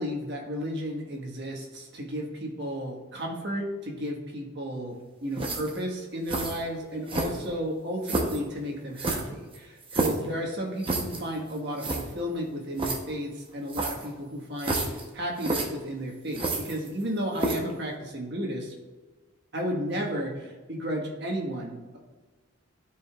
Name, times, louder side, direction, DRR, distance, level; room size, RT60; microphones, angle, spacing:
voice 1, 0.0-18.7 19.5-22.0, equal, 55° right, -1 dB, 1.5 m, -33 dB
sound 1, 5.3-5.8 6.3-6.6 7.1-7.6 8.0-8.4 9.0-10.2 10.8-11.2 11.5-11.6 11.8-12.0 12.8-13.0 13.7-14.1 14.6-15.0 15.4-15.6 16.3-17.0 17.3-17.7, right 2 dB, 25° right, 0.8 m, -29 dB
12.0 x 5.0 x 2.4 m, 1.3 s
head